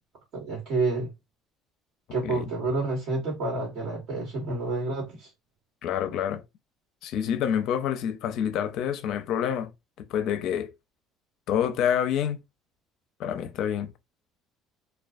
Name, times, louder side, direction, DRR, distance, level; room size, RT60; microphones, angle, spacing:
voice 1, 0.3-1.1 2.1-5.3, right 3 dB, 65° right, 1.2 m, -29 dB
voice 2, 5.8-6.4 7.0-9.7 10.1-10.7 11.5-12.4 13.2-13.9, left 9 dB, 65° left, 0.5 m, -27 dB
2.4 x 2.2 x 2.5 m
supercardioid pair, 105°, 0 cm